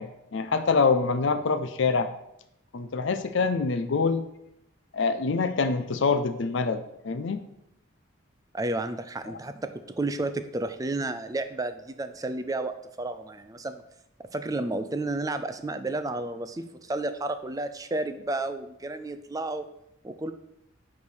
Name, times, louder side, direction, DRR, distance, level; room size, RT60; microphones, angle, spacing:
voice 1, 0.0-2.1 2.7-4.2 4.9-7.4 9.3-9.4, left 4 dB, 60° left, 9 dB, 0.5 m, -25 dB
voice 2, 8.5-13.8 14.2-19.7 20.0-20.3, right 2 dB, 15° right, 10 dB, 0.4 m, -32 dB
8.4 x 3.3 x 6.1 m, 0.81 s
head